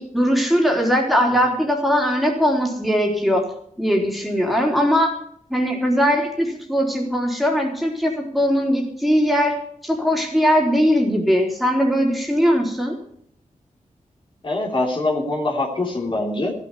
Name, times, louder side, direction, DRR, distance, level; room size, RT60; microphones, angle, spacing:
voice 1, 0.0-3.4 3.8-5.1 5.5-9.6 9.8-13.0, equal, ahead, 0 dB, 3.8 m, -20 dB
voice 2, 14.4-16.5, left 2 dB, 40° left, -2 dB, 3.3 m, -23 dB
15.5 x 8.2 x 8.2 m, 0.64 s
wide cardioid pair, 100°, 14 cm